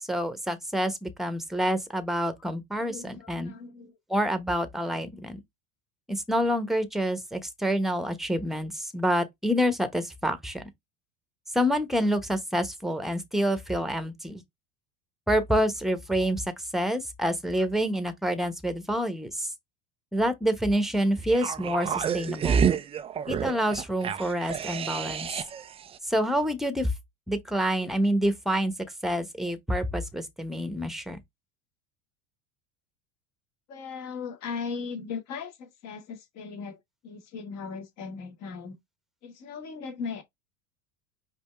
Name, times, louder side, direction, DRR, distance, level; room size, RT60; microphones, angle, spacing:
voice 1, 0.0-3.5 4.1-5.4 6.1-10.6 11.5-14.4 15.3-16.4 16.7-19.5 20.1-22.7 23.3-25.3 26.0-26.9 27.3-28.7 29.0-31.2, equal, ahead, 1.0 m, -27 dB
voice 2, 2.8-3.9 33.7-38.8 39.2-40.2, left 5 dB, 50° left, 2.1 m, -38 dB
sound 1, 21.3-25.7 26.0-26.1, right 7 dB, 20° right, 0.3 m, -28 dB
5.2 x 2.8 x 3.4 m
hypercardioid pair, 100°, 34 cm